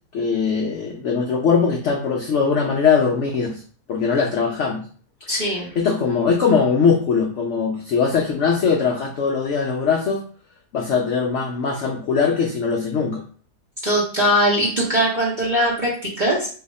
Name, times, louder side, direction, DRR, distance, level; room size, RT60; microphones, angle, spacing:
voice 1, 0.1-3.6 3.9-4.8 5.8-10.2 10.7-13.2, left 5 dB, 70° left, 0 dB, 0.6 m, -21 dB
voice 2, 5.3-5.7 13.8-16.5, equal, 40° right, -5 dB, 0.7 m, -20 dB
2.7 x 2.4 x 4.0 m, 0.42 s
omnidirectional pair, 1.8 m